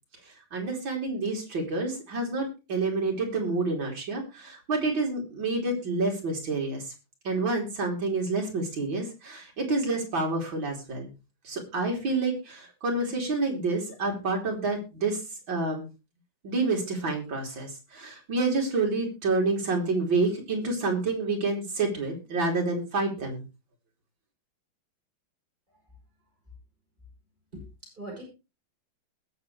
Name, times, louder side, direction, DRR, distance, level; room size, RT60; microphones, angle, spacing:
voice 1, 0.5-6.9 7.2-11.1 11.4-15.2 15.5-15.9 16.4-23.4, right 3 dB, 65° right, 1 dB, 4.1 m, -28 dB
voice 2, 27.5-28.2, right 1 dB, 20° right, -2 dB, 8.0 m, -42 dB
21.0 x 7.2 x 3.3 m, 0.29 s
omnidirectional pair, 2.3 m